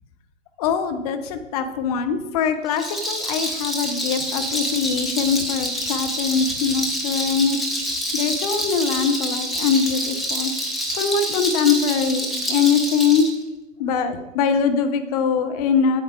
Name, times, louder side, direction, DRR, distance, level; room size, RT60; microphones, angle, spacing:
voice 1, 0.6-7.7 8.1-10.5 10.9-13.3 13.8-16.0, left 6 dB, 30° left, 7 dB, 0.9 m, -22 dB
Rattle, 2.7-13.3, equal, ahead, 0.6 m, -27 dB
8.7 x 8.1 x 4.9 m, 1.0 s
figure-of-eight pair, 115°, 39 cm